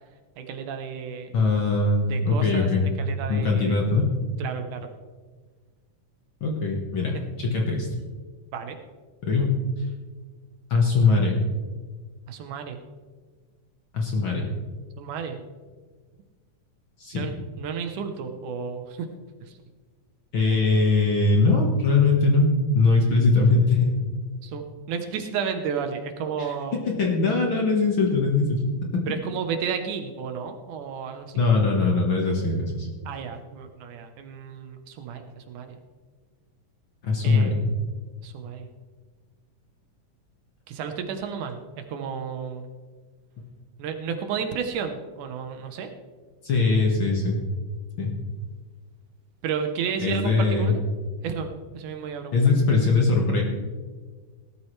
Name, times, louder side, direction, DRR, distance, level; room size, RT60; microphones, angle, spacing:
voice 1, 0.4-1.3 2.1-2.7 3.0-3.8 4.4-4.9 7.1-7.3 8.5-8.8 12.3-12.8 15.0-15.4 17.1-19.1 24.4-26.8 29.1-31.4 33.1-35.8 37.2-37.5 38.2-38.7 40.7-42.7 43.8-45.9 49.4-50.8 51.2-52.4, right 6 dB, 75° right, 6 dB, 2.4 m, -32 dB
voice 2, 1.3-2.9 3.3-4.1 6.4-7.9 9.2-9.6 10.7-11.4 13.9-14.5 17.0-17.2 20.3-23.9 26.4-26.5 26.9-28.6 31.4-32.9 37.0-37.5 46.4-47.4 48.0-48.1 50.0-50.7 52.3-53.4, left 3 dB, 45° left, 0 dB, 1.9 m, -21 dB
17.5 x 13.0 x 3.3 m, 1.5 s
omnidirectional pair, 3.7 m